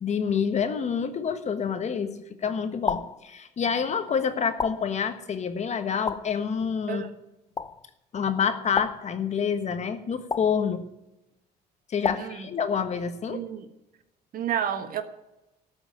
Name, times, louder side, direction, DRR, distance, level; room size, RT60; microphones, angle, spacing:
voice 1, 0.0-7.0 8.1-10.8 11.9-13.4, left 6 dB, 40° left, 9 dB, 1.4 m, -27 dB
sound 1, 2.9-3.3 4.6-5.0 6.1-6.4 7.6-7.9 8.8-9.2 10.3-10.7 12.0-12.4, left 5 dB, 20° left, 0.5 m, -31 dB
voice 2, 12.1-12.5 13.3-13.7 14.3-15.0, right 9 dB, 60° right, 9 dB, 1.4 m, -30 dB
13.5 x 6.2 x 9.1 m, 0.94 s
cardioid pair, 110°, 17 cm